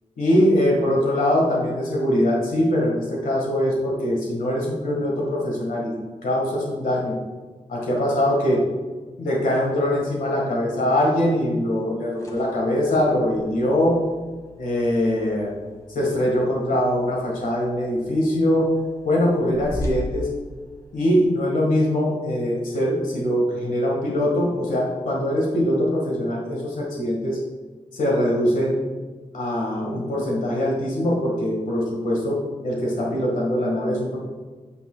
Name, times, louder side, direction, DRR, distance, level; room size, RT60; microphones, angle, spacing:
voice 1, 0.2-5.9 6.2-7.2 7.7-8.7 9.2-14.0 14.6-15.5 15.9-18.7 19.0-20.3 20.9-27.4 27.9-28.8 29.3-34.2, left 1 dB, 85° left, -3 dB, 1.5 m, -22 dB
sound 1, 11.9-21.2, equal, 25° left, 1.3 m, -39 dB
9.0 x 7.1 x 2.2 m, 1.3 s
wide cardioid pair, 130°, 13 cm